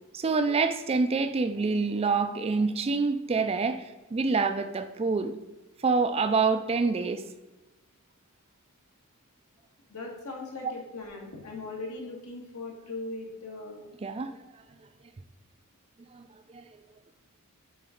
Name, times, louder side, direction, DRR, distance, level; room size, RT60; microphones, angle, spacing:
voice 1, 0.1-5.3 5.8-7.3 10.6-10.7 14.0-14.4 16.1-16.3 16.5-16.6, right 4 dB, 25° right, 0.4 m, -26 dB
voice 2, 9.9-13.9, left 3 dB, 75° left, 2.0 m, -39 dB
7.5 x 3.9 x 5.0 m
head